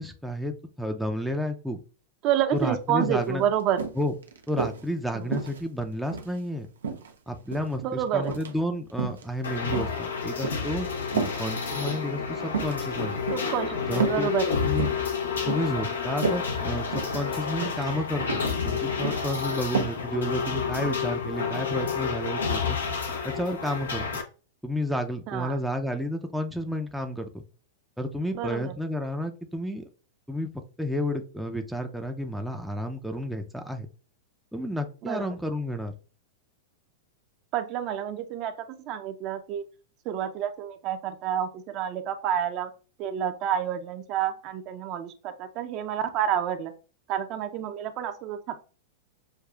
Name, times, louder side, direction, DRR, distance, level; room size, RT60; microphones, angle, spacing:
voice 1, 0.0-1.8 2.5-3.4 4.0-4.1 4.5-6.7 7.3-13.1 13.9-14.3 14.7-14.9 15.5-22.8 23.2-24.0 24.6-27.4 28.0-29.9 30.3-30.5 30.8-33.9 34.5-35.9, equal, ahead, 3 dB, 0.5 m, -31 dB
voice 2, 2.2-3.8 5.1-5.3 7.8-8.4 11.1-11.3 13.3-14.6 15.4-15.5 25.3-25.6 28.3-28.7 35.0-35.3 37.5-38.5 38.9-39.6 40.0-42.7 43.0-46.7 47.1-48.6, right 10 dB, 45° right, 8 dB, 0.6 m, -29 dB
sound 1, 2.6-2.7 3.0-3.3 3.8-4.8 5.3-6.4 6.8-7.7 8.2-8.5 8.9-9.2 9.7-10.7 11.1-11.4 11.8-12.1 12.5-12.8 13.3-13.5 14.0-14.3 14.6-15.0 15.5-15.8 16.0-16.4 16.9-17.3 17.6-17.8 18.3-18.6 18.8-19.2 19.7-20.0 20.3-20.4, right 5 dB, 85° right, 0.6 m, -31 dB
sound 2, 9.4-24.2, left 6 dB, 85° left, 0.8 m, -30 dB
6.5 x 2.3 x 2.4 m, 0.36 s
hypercardioid pair, 110°, 0 cm